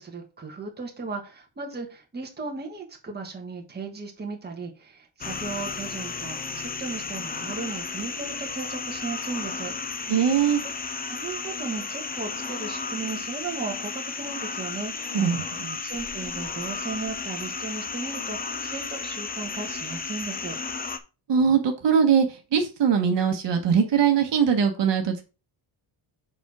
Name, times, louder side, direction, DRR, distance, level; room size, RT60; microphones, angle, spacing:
voice 1, 0.0-9.7 11.1-14.9 15.8-20.6, right 4 dB, 20° right, 1 dB, 1.5 m, -36 dB
sound 1, 5.2-21.0, left 4 dB, 20° left, 0.5 m, -33 dB
voice 2, 10.1-10.6 15.1-15.8 21.3-25.2, right 7 dB, 60° right, 4 dB, 1.3 m, -22 dB
7.0 x 4.4 x 4.8 m, 0.32 s
wide cardioid pair, 170°, 48 cm